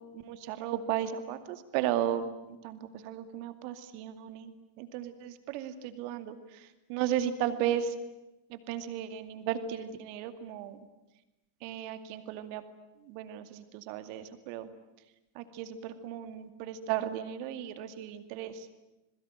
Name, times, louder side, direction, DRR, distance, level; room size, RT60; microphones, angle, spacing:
voice 1, 0.1-7.9 8.5-10.8 11.6-12.6 13.1-14.7 15.4-18.7, right 10 dB, 45° right, 10 dB, 2.3 m, -35 dB
27.0 x 21.5 x 9.3 m, 0.98 s
figure-of-eight pair, 90°, 0 cm